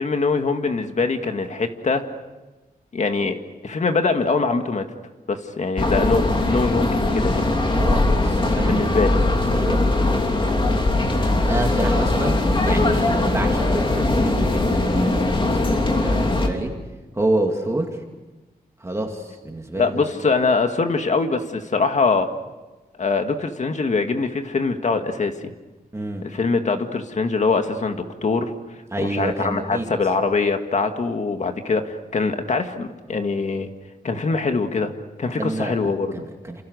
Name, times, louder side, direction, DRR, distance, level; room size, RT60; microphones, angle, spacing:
voice 1, 0.0-2.0 2.9-3.4 3.6-4.9 5.3-7.5 8.6-9.1 19.7-22.3 23.0-25.5 26.2-28.5 29.0-33.7 34.0-34.9 35.2-36.1, left 4 dB, 50° left, 6 dB, 2.1 m, -23 dB
sound 1, 5.8-16.5, left 2 dB, 30° left, 3.2 m, -20 dB
voice 2, 7.7-9.2 9.5-9.9 11.5-16.7 17.1-18.0 18.8-20.0 25.9-26.2 28.9-29.9 35.4-35.8 36.1-36.6, right 2 dB, 20° right, 2 dB, 2.5 m, -28 dB
29.0 x 28.5 x 6.6 m, 1.1 s
wide cardioid pair, 145°, 16 cm